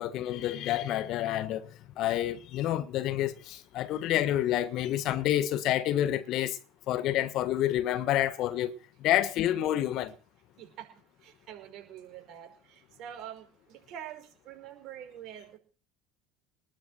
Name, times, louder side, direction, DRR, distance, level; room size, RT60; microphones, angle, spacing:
voice 1, 0.0-1.7 2.0-6.6 6.9-10.1, left 12 dB, 55° left, 1.4 m, -28 dB
voice 2, 11.2-15.6, right 10 dB, 55° right, 5.4 m, -45 dB
19.5 x 7.1 x 7.7 m
hypercardioid pair, 75°, 0 cm